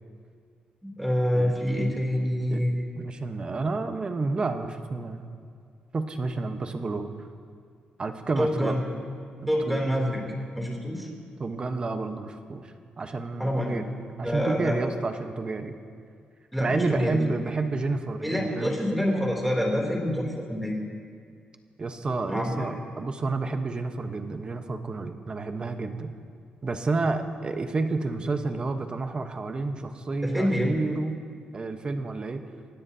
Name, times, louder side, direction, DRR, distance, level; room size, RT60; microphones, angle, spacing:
voice 1, 0.8-2.8 8.4-8.8 9.5-10.2 10.5-11.1 13.4-13.8 14.2-14.9 16.5-17.2 18.2-20.7 22.3-22.6 30.2-30.7, equal, ahead, -1 dB, 2.9 m, -26 dB
voice 2, 3.0-5.2 5.9-7.1 8.0-8.8 9.4-9.9 11.4-13.8 14.2-15.7 16.6-18.8 21.8-26.1 26.6-31.2 31.5-32.4, right 3 dB, 30° right, 7 dB, 1.0 m, -30 dB
25.5 x 17.0 x 2.8 m, 2.2 s
cardioid pair, 135°, 3 cm